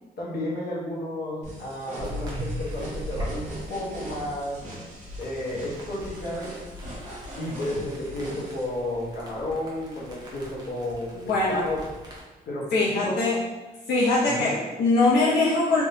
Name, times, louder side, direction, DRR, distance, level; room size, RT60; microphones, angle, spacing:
voice 1, 0.2-4.6 5.2-6.5 7.4-11.8 12.5-13.2 14.3-14.6, left 1 dB, 65° left, -4 dB, 1.1 m, -32 dB
sound 1, 1.4-8.6, right 1 dB, 45° right, 1.1 m, -41 dB
sound 2, 2.0-12.2, equal, 25° right, 0.8 m, -39 dB
voice 2, 11.1-11.6 12.7-13.4 13.9-15.8, left 2 dB, 85° left, -7 dB, 0.7 m, -22 dB
3.5 x 2.9 x 2.6 m, 1.2 s
cardioid pair, 135°, 17 cm